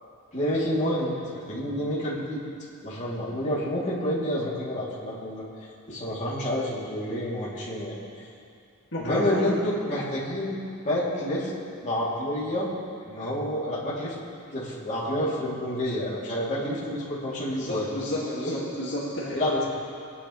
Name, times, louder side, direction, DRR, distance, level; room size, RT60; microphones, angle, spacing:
voice 1, 0.3-2.4 2.8-5.4 5.9-8.3 9.0-10.6 10.8-11.5 11.8-12.7 13.0-14.1 14.5-17.9 18.4-18.5 19.3-19.6, equal, 35° left, -8 dB, 3.1 m, -29 dB
voice 2, 8.9-9.5 17.5-19.4, left 1 dB, 55° left, -8 dB, 2.3 m, -31 dB
22.5 x 9.8 x 3.3 m, 2.4 s
head